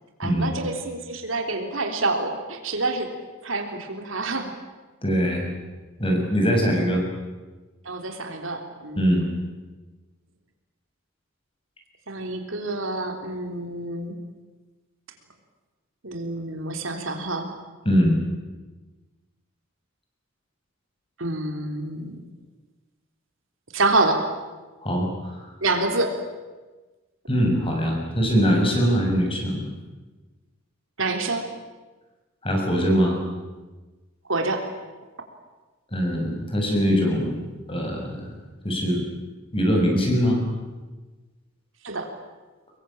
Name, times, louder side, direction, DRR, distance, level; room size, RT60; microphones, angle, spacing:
voice 1, 0.2-3.1 3.4-4.5 7.9-9.1 12.1-14.2 16.0-17.5 21.2-22.2 23.7-24.2 25.6-26.2 31.0-31.5 34.3-34.7 41.8-42.1, right 2 dB, 70° right, 5 dB, 3.5 m, -27 dB
voice 2, 5.0-5.5 6.0-7.0 9.0-9.3 17.9-18.2 24.8-25.4 27.3-29.7 32.4-33.2 35.9-37.3 37.7-38.3 38.6-39.0 39.5-40.4, equal, 25° left, 1 dB, 6.9 m, -22 dB
25.5 x 22.5 x 9.0 m, 1.2 s
head